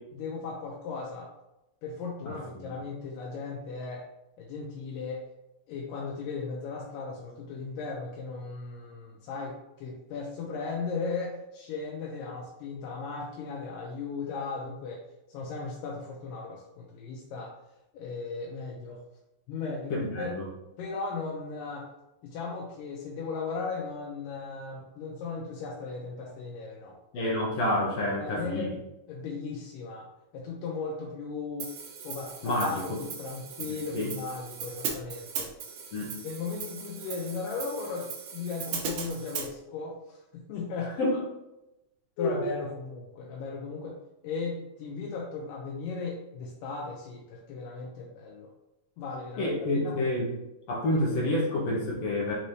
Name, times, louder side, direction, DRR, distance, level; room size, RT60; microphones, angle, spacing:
voice 1, 0.1-1.3 1.8-4.0 4.4-5.3 5.7-15.0 15.3-17.6 17.9-19.0 19.5-20.3 20.8-21.9 22.2-27.0 28.1-28.8 29.1-31.7 32.0-35.5 36.2-41.0 42.2-44.0 44.2-48.5 49.0-50.0 50.9-51.0, left 4 dB, 90° left, -2 dB, 2.3 m, -37 dB
voice 2, 2.2-2.7 19.9-20.5 27.1-28.7 32.4-33.0 33.9-34.1 35.9-36.1 41.0-41.2 42.2-42.4 49.4-50.3 50.7-52.3, left 1 dB, 70° left, -3 dB, 1.5 m, -28 dB
Hi-hat, 31.6-39.5, right 6 dB, 85° right, 1.5 m, -38 dB
5.5 x 3.2 x 2.7 m, 0.92 s
omnidirectional pair, 3.8 m